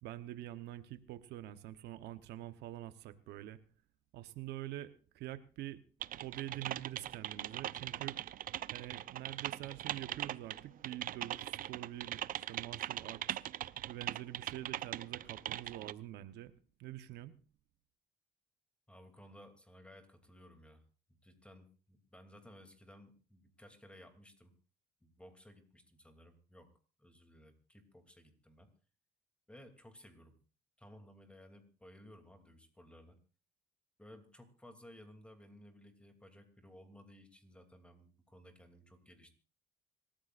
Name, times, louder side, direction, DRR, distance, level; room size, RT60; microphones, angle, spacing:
voice 1, 0.0-3.6 4.1-5.8 6.2-8.2 8.7-13.4 13.9-16.5 16.8-17.3, right 14 dB, 80° right, 12 dB, 1.0 m, -46 dB
Typing, 6.0-15.9, right 12 dB, 55° right, 0.6 m, -41 dB
voice 2, 18.9-20.8 21.2-24.5 25.0-26.7 27.0-28.7 29.5-30.4 30.8-33.2 34.0-39.3, equal, 5° left, 6 dB, 2.8 m, -58 dB
25.5 x 14.0 x 2.5 m, 0.38 s
cardioid pair, 110°, 17 cm